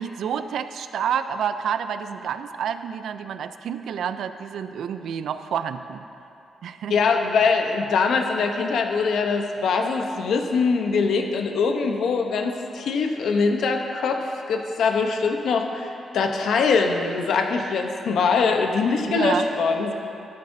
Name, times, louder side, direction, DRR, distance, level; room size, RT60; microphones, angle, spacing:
voice 1, 0.0-6.0 6.6-7.0 19.1-19.5, right 8 dB, 70° right, 10 dB, 0.4 m, -29 dB
voice 2, 6.9-19.9, left 4 dB, 70° left, 4 dB, 0.8 m, -23 dB
12.5 x 11.5 x 2.7 m, 2.7 s
wide cardioid pair, 170°, 0 cm